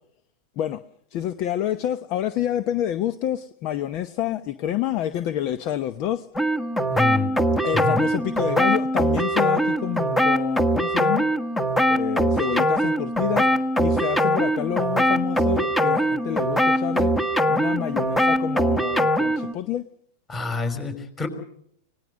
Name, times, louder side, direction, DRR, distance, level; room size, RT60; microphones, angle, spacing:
voice 1, 1.1-6.3 7.6-11.2 11.9-13.5 13.8-17.1 17.5-19.8, left 11 dB, 45° left, 0.9 m, -28 dB
sound 1, 6.4-19.5, equal, 5° left, 1.4 m, -22 dB
voice 2, 6.9-7.3 7.7-8.0 20.3-21.3, left 3 dB, 20° left, 5.2 m, -27 dB
25.0 x 18.5 x 6.4 m
supercardioid pair, 130°, 0 cm